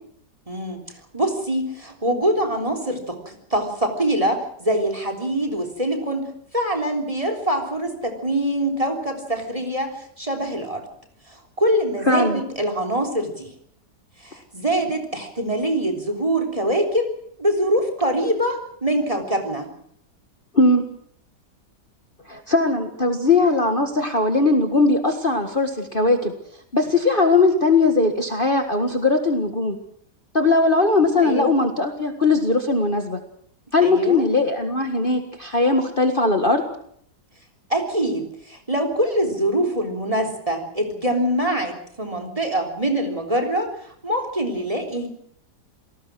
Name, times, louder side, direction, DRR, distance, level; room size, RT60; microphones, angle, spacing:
voice 1, 0.5-0.8 1.1-10.8 11.3-13.5 14.2-17.1 17.4-19.7 31.2-31.6 33.8-34.2 37.7-45.1, right 1 dB, 20° right, 6 dB, 3.6 m, -24 dB
voice 2, 12.1-12.4 20.5-20.8 22.3-26.3 26.7-29.8 30.3-33.2 33.7-36.6, left 3 dB, 30° left, 5 dB, 1.8 m, -19 dB
27.5 x 19.0 x 6.2 m, 0.65 s
omnidirectional pair, 1.8 m